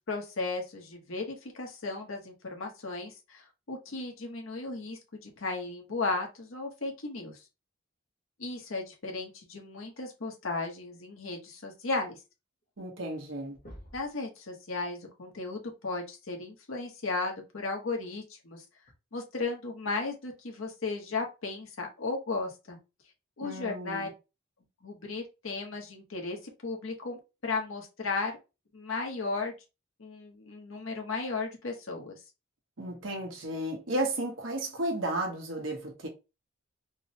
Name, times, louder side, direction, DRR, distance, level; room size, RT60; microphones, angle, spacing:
voice 1, 0.1-7.4 8.4-12.2 13.9-18.6 19.1-22.8 23.4-24.1 24.8-28.4 28.7-29.5 30.0-32.2, left 3 dB, 80° left, 1.0 m, -35 dB
sound 1, 12.6-12.7 13.0-13.3 13.5-14.2 15.9-16.0 17.8-18.0 18.9-19.0, equal, 40° left, 0.8 m, -49 dB
voice 2, 12.8-13.6 23.4-24.1 32.8-36.1, right 1 dB, 70° right, 0.9 m, -33 dB
3.6 x 2.1 x 2.7 m
head